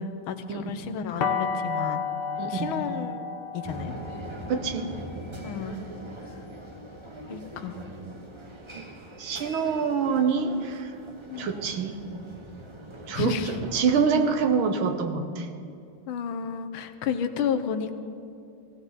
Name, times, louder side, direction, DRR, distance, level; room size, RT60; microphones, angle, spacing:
voice 1, 0.0-2.0 2.5-3.3 3.5-3.9 5.4-5.8 7.3-7.8 11.3-11.5 13.1-13.6 16.1-18.0, left 7 dB, 90° left, 8 dB, 1.6 m, -31 dB
sound 1, 1.2-7.0, left 6 dB, 65° left, 1.4 m, -33 dB
voice 2, 2.4-2.7 4.5-4.9 8.7-8.8 9.2-10.9 11.4-12.0 13.1-13.4 13.7-15.5, right 5 dB, 90° right, 7 dB, 1.9 m, -25 dB
sound 2, 3.6-14.9, right 1 dB, 30° right, 0.5 m, -42 dB
18.0 x 16.0 x 4.1 m, 2.5 s
omnidirectional pair, 2.2 m